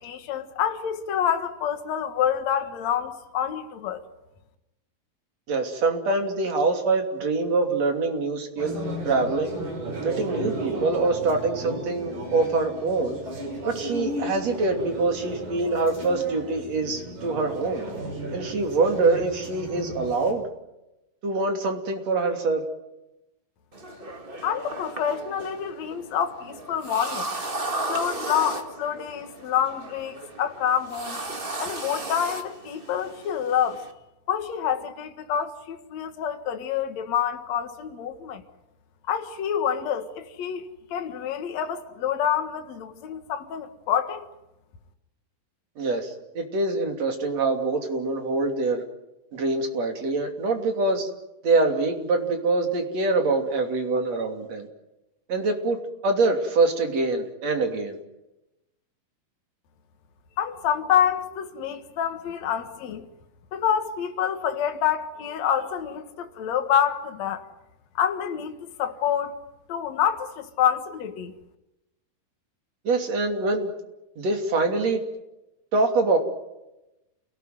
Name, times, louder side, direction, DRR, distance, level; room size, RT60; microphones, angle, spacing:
voice 1, 0.0-4.0 24.4-27.5 27.9-31.2 31.6-33.9 34.3-38.4 39.1-44.3 60.4-63.1 63.5-67.4 67.9-69.3 69.7-71.3, left 9 dB, 55° left, 2.7 m, -27 dB
voice 2, 5.5-8.8 9.1-9.5 10.0-13.2 13.7-17.9 18.3-20.4 21.2-22.6 45.8-48.8 49.3-51.1 51.4-54.7 55.3-58.0 72.9-73.7 74.2-75.0 75.7-76.2, right 3 dB, 50° right, 4.0 m, -24 dB
sound 1, 8.6-20.3, right 1 dB, 85° right, 7.9 m, -34 dB
sound 2, 23.7-33.9, right 2 dB, 20° right, 1.6 m, -35 dB
29.0 x 18.0 x 9.4 m
omnidirectional pair, 3.9 m